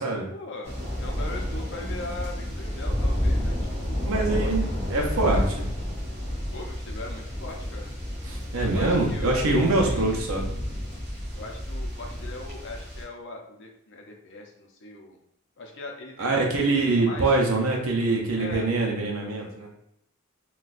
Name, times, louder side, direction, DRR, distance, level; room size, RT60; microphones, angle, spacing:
voice 1, 0.3-4.8 6.5-7.9 8.7-10.7 11.3-15.2 15.6-17.3 18.3-18.7, left 2 dB, 60° left, 2 dB, 0.6 m, -40 dB
sound 1, 0.6-13.0, equal, 30° right, 1.3 m, -30 dB
voice 2, 4.0-5.7 8.2-10.5 16.2-19.7, right 2 dB, 70° right, 0 dB, 0.6 m, -24 dB
4.0 x 2.3 x 2.5 m, 0.77 s
head